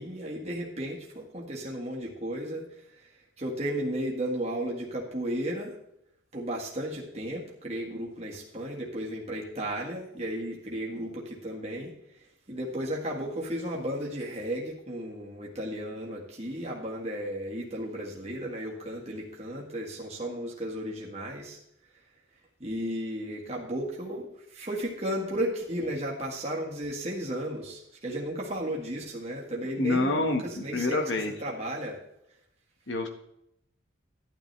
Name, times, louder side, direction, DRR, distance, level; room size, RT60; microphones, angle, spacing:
voice 1, 0.0-2.7 3.4-5.7 6.3-11.9 12.5-21.6 22.6-24.3 24.5-32.0, right 1 dB, 30° right, -3 dB, 1.8 m, -34 dB
voice 2, 29.8-31.3 32.9-33.1, left 2 dB, 60° left, 4 dB, 1.6 m, -27 dB
12.0 x 11.0 x 3.4 m, 0.76 s
head